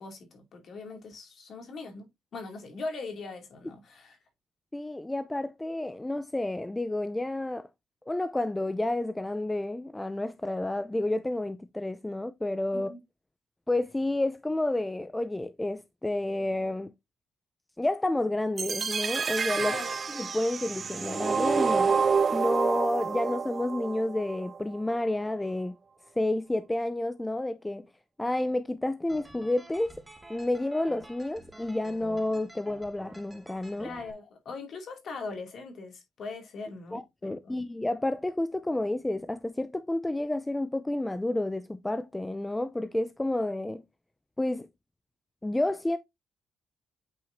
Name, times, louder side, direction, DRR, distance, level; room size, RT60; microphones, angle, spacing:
voice 1, 0.0-2.1 2.3-4.2 12.7-13.0 19.6-20.0 33.8-37.5, left 3 dB, 60° left, 2.5 m, -40 dB
voice 2, 4.7-7.7 8.1-12.9 13.7-16.9 17.8-19.8 20.1-21.9 22.3-25.7 26.2-27.8 28.2-29.9 30.3-33.9 36.9-43.8 44.4-44.7 45.4-46.0, left 1 dB, 10° left, 0.5 m, -30 dB
sound 1, 18.6-24.6, right 5 dB, 40° right, 0.3 m, -28 dB
sound 2, 29.1-34.1, right 2 dB, 15° right, 1.5 m, -50 dB
8.6 x 4.8 x 2.7 m
cardioid pair, 90°, 0 cm